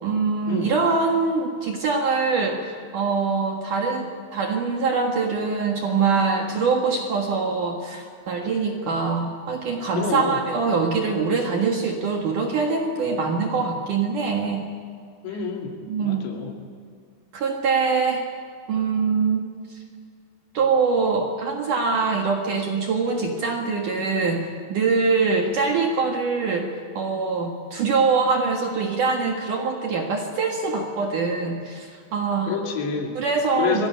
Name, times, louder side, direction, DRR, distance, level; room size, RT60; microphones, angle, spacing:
voice 1, 0.0-14.7 15.9-16.3 17.3-18.2 18.7-19.4 19.7-19.8 20.5-32.5 33.1-33.9, right 4 dB, 55° right, 1 dB, 2.7 m, -23 dB
voice 2, 10.0-10.4 15.2-15.8 16.0-16.6 32.5-33.1 33.6-33.9, left 6 dB, 75° left, 0 dB, 4.6 m, -28 dB
26.0 x 18.5 x 8.9 m, 2.1 s
omnidirectional pair, 5.2 m